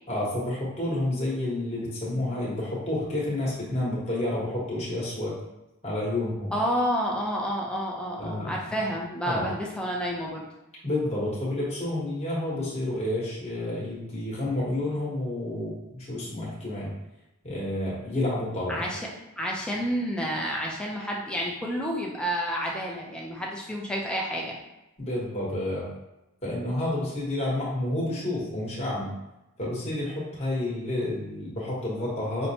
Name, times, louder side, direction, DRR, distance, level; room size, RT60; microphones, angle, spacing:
voice 1, 0.1-5.4 5.8-6.5 8.2-8.8 9.2-9.5 10.8-16.9 17.4-18.8 25.0-25.9 26.4-29.1 29.6-32.5, left 1 dB, 30° left, -6 dB, 1.2 m, -30 dB
voice 2, 6.5-10.5 18.7-19.1 19.4-24.6, equal, 5° left, -2 dB, 0.5 m, -29 dB
5.6 x 2.1 x 2.8 m, 0.95 s
head